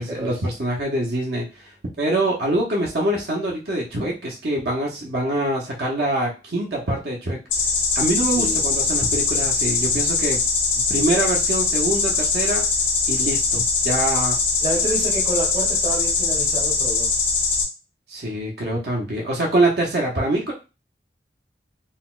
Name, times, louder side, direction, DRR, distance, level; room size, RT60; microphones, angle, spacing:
voice 1, 0.0-1.7 2.0-7.4 7.9-10.4 10.7-12.6 13.1-14.4 18.1-20.5, right 1 dB, 60° right, -2 dB, 0.7 m, -24 dB
sound 1, 7.5-17.6, left 4 dB, 90° left, 0.9 m, -22 dB
voice 2, 8.3-8.7 14.6-17.1, right 1 dB, 30° right, -2 dB, 0.8 m, -28 dB
3.9 x 2.1 x 2.4 m, 0.30 s
head